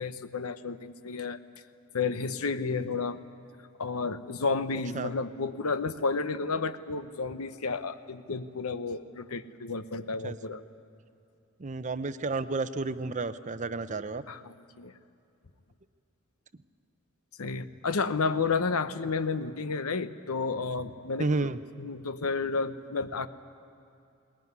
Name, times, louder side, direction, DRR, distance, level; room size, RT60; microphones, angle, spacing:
voice 1, 0.0-1.4 1.9-3.2 3.8-10.6 14.3-14.9 17.4-21.5 21.8-23.3, left 4 dB, 90° left, 11 dB, 0.9 m, -31 dB
voice 2, 11.6-14.2 21.2-21.6, right 3 dB, 35° right, 12 dB, 0.6 m, -31 dB
21.0 x 20.0 x 9.5 m, 2.7 s
head